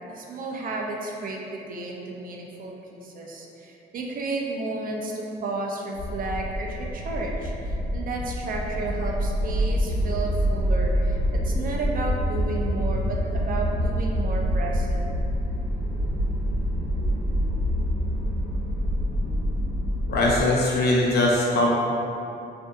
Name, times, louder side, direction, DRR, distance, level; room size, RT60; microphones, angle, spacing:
voice 1, 0.1-15.1, right 2 dB, 45° right, -1 dB, 0.4 m, -32 dB
sound 1, 5.9-20.4, equal, 85° right, 1.0 m, -26 dB
voice 2, 20.1-21.7, left 2 dB, 55° left, -3 dB, 0.6 m, -21 dB
2.6 x 2.5 x 2.3 m, 2.7 s
cardioid pair, 90°, 20 cm